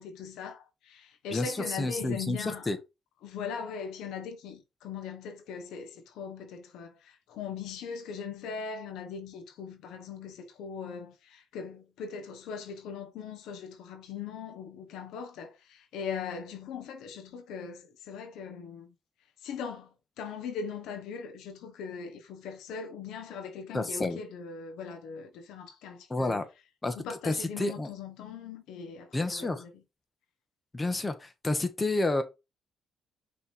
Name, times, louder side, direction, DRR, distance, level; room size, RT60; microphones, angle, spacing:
voice 1, 0.0-2.7 3.2-18.9 19.4-26.4 26.9-29.8, left 6 dB, 90° left, 1.2 m, -40 dB
voice 2, 1.3-2.8 23.7-24.2 26.1-26.5 26.8-26.9 27.2-27.9 29.1-29.6 30.7-32.2, left 2 dB, 20° left, 1.3 m, -30 dB
5.8 x 3.5 x 4.7 m
cardioid pair, 90°, 0 cm